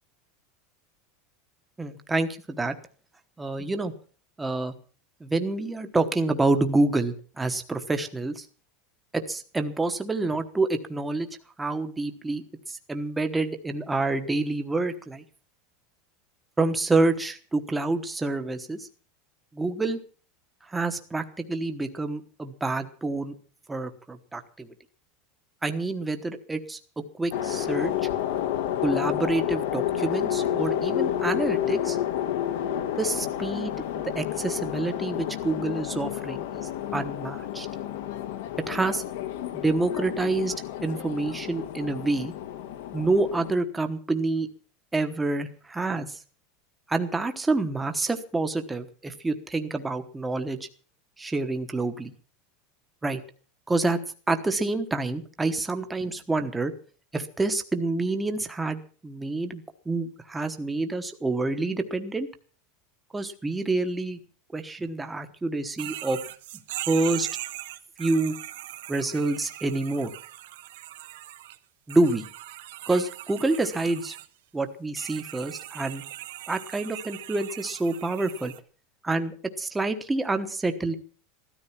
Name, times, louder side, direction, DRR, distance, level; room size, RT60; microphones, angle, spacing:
voice 1, 1.8-2.7 3.4-3.9 4.4-4.7 5.2-8.5 9.1-11.3 11.6-15.2 16.6-18.9 19.5-20.0 20.7-23.3 23.7-24.7 25.6-28.1 28.8-32.0 33.0-37.7 38.7-39.0 39.5-40.5 40.8-42.3 42.9-44.5 44.9-46.2 46.9-50.7 51.2-52.1 53.0-53.2 53.7-54.0 54.3-56.7 57.1-62.3 63.1-64.2 64.5-66.2 66.9-67.3 68.0-68.3 68.9-70.1 71.9-72.2 72.9-74.2 74.5-76.0 76.5-78.5 79.0-80.9, right 2 dB, 5° right, 7 dB, 1.1 m, -27 dB
sound 1, 27.3-43.5, left 11 dB, 75° left, 1.5 m, -30 dB
sound 2, 65.8-71.6 71.9-74.3 75.0-78.6, right 15 dB, 85° right, 1.1 m, -40 dB
16.0 x 13.5 x 5.9 m, 0.41 s
supercardioid pair, 175°, 0 cm